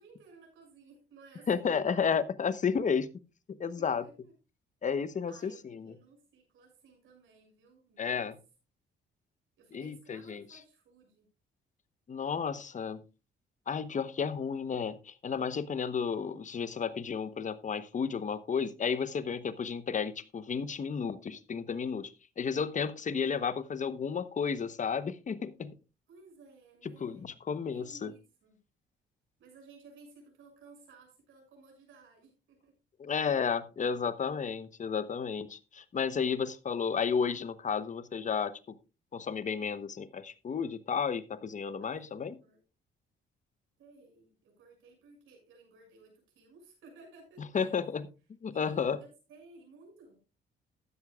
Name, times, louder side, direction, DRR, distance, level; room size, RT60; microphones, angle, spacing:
voice 1, 0.0-1.8 3.8-4.3 5.3-8.3 9.6-11.3 26.1-27.4 27.7-28.6 29.4-32.7 41.8-42.6 43.8-47.8 48.5-50.2, right 3 dB, 80° right, 1 dB, 6.6 m, -57 dB
voice 2, 1.5-3.1 3.5-4.0 4.8-5.9 8.0-8.3 9.7-10.4 12.1-13.0 13.7-25.8 26.8-28.1 33.0-38.8 39.1-42.4 47.4-48.1 48.4-49.0, left 6 dB, 40° left, 14 dB, 1.0 m, -32 dB
14.5 x 10.5 x 2.4 m, 0.30 s
cardioid pair, 90°, 20 cm